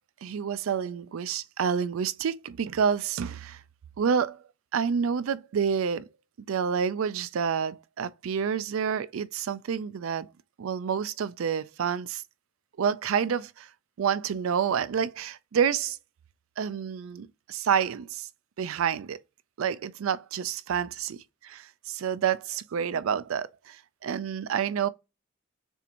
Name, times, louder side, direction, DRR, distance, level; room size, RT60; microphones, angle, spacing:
voice 1, 0.2-3.6 4.0-4.4 4.7-6.1 6.5-10.3 10.6-12.2 12.8-13.7 14.0-16.0 16.6-18.3 18.6-19.2 19.6-20.9 21.4-24.9, right 7 dB, 85° right, 0.4 m, -28 dB
7.0 x 2.9 x 2.5 m
head